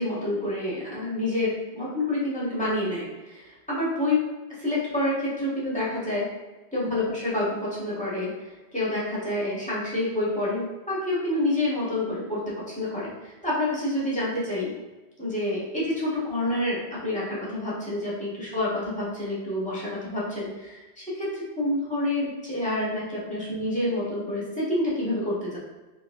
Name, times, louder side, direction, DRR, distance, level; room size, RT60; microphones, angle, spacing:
voice 1, 0.0-4.2 4.6-6.3 6.7-8.3 8.7-14.7 15.2-25.6, left 1 dB, 5° left, -8 dB, 1.2 m, -28 dB
3.9 x 3.1 x 2.6 m, 1.2 s
omnidirectional pair, 1.1 m